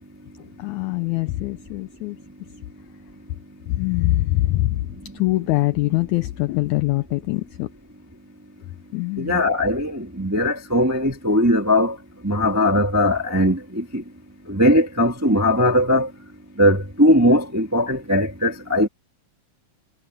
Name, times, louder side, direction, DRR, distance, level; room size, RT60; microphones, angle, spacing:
voice 1, 0.6-2.2 3.7-4.8 5.1-7.7 8.9-9.4, left 18 dB, 90° left, 1.7 m, -23 dB
voice 2, 9.2-12.0 12.2-14.0 14.5-16.1 16.6-18.9, left 1 dB, 15° right, 0.6 m, -19 dB
omnidirectional pair, 4.0 m